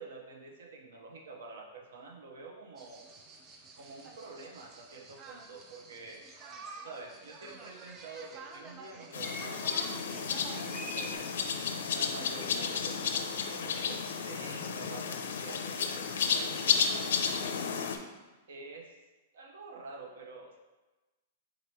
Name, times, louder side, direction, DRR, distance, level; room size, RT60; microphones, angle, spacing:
voice 1, 0.0-3.1 3.8-6.2 6.8-11.3 11.9-16.8 18.5-19.0 19.3-20.6, right 3 dB, 80° right, 0 dB, 0.8 m, -48 dB
sound 1, 2.8-11.2, right 3 dB, 20° right, 0.4 m, -48 dB
sound 2, 9.1-18.0, left 6 dB, 80° left, 0.4 m, -32 dB
3.9 x 2.9 x 4.5 m, 1.1 s
supercardioid pair, 170°, 0 cm